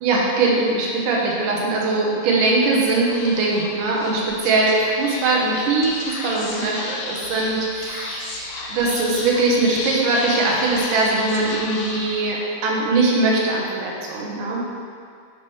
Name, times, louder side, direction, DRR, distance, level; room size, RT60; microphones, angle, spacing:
voice 1, 0.0-14.6, right 3 dB, 85° right, -3 dB, 2.6 m, -21 dB
Speech / Whispering, 2.8-12.6, left 3 dB, 85° left, 1.3 m, -33 dB
9.3 x 4.7 x 3.1 m, 2.3 s
omnidirectional pair, 3.6 m